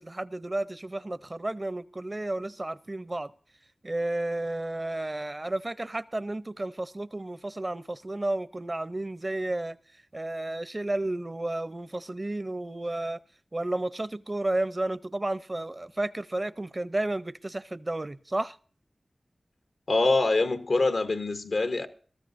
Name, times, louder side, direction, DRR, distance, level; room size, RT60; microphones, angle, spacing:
voice 1, 0.0-3.3 3.8-9.8 10.1-13.2 13.5-18.6, right 2 dB, 40° right, 0.6 m, -32 dB
voice 2, 19.9-21.9, left 3 dB, 85° left, 0.9 m, -24 dB
21.5 x 13.0 x 2.6 m
cardioid pair, 40°, 0 cm